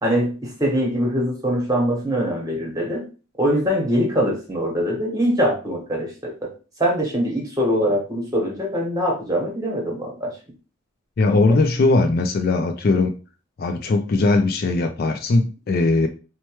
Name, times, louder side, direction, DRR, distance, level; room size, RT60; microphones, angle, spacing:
voice 1, 0.0-3.1 3.4-6.5 6.8-10.3, equal, 15° right, 1.1 m, -23 dB
voice 2, 11.2-13.1 13.6-16.1, left 3 dB, 45° left, 0.3 m, -19 dB
4.4 x 2.2 x 3.0 m
head